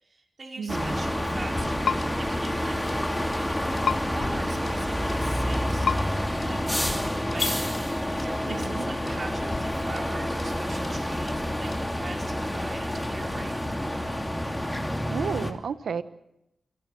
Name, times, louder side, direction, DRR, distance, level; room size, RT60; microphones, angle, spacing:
voice 1, 0.0-3.3 4.1-7.7 8.1-14.3, right 3 dB, 50° right, 1 dB, 5.0 m, -42 dB
voice 2, 0.6-0.9 8.5-8.8 15.1-16.0, right 6 dB, 85° right, 12 dB, 1.1 m, -32 dB
sound 1, 0.7-15.5, equal, 10° left, 2.7 m, -28 dB
sound 2, 1.6-2.6 2.9-3.1 3.3-3.5 3.8-5.3 5.5-5.7 6.0-6.2 6.4-6.6 6.9-7.9 8.2-8.4 8.6-8.8 9.1-9.3 9.5-10.6 10.8-11.0 11.3-11.5 11.7-11.9, left 3 dB, 45° left, 3.2 m, -43 dB
sound 3, 1.8-2.0 3.8-4.0 5.8-6.0 7.4-7.5, left 6 dB, 80° left, 0.8 m, -25 dB
28.0 x 18.5 x 6.9 m, 0.85 s
cardioid pair, 65°, 0 cm